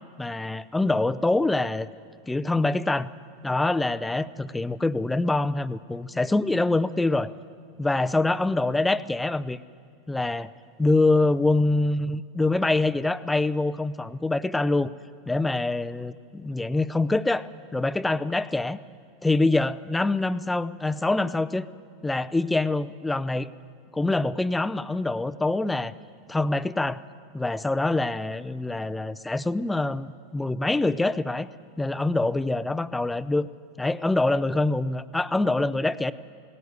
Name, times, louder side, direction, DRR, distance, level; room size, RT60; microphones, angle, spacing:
voice 1, 0.2-1.9 2.3-3.1 3.4-7.3 7.8-9.6 10.1-10.5 10.8-14.9 15.3-17.5 17.7-18.8 19.2-21.7 22.0-23.5 23.9-25.9 26.3-27.0 27.3-31.5 31.8-33.5 33.8-36.1, left 2 dB, 10° left, 14 dB, 0.6 m, -25 dB
17.5 x 17.5 x 9.6 m, 2.3 s
hypercardioid pair, 110°, 0 cm